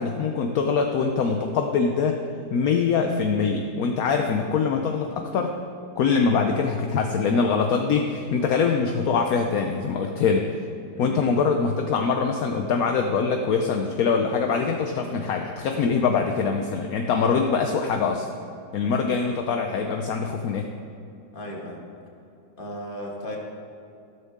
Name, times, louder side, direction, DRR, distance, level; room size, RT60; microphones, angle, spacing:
voice 1, 0.0-2.2 2.5-5.5 6.0-10.4 11.0-18.3 18.7-20.7, left 5 dB, 65° left, 4 dB, 1.0 m, -23 dB
voice 2, 10.9-11.4 21.3-21.8 22.6-23.4, equal, 30° left, -1 dB, 1.8 m, -36 dB
14.0 x 12.5 x 3.6 m, 2.6 s
omnidirectional pair, 2.1 m